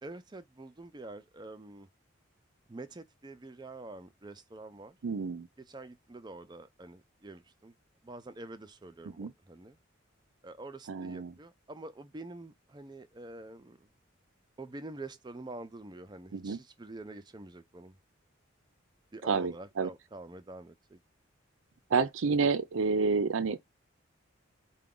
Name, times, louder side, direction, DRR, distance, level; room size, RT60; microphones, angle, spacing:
voice 1, 0.0-1.9 2.7-5.0 5.6-7.7 8.0-9.8 10.4-13.9 14.6-18.0 19.1-21.0, right 2 dB, 20° right, 0.4 m, -46 dB
voice 2, 5.0-5.5 9.2-9.3 10.9-11.3 16.3-16.6 19.2-19.9 21.9-23.6, right 4 dB, 75° right, 0.5 m, -29 dB
4.7 x 2.3 x 3.7 m
head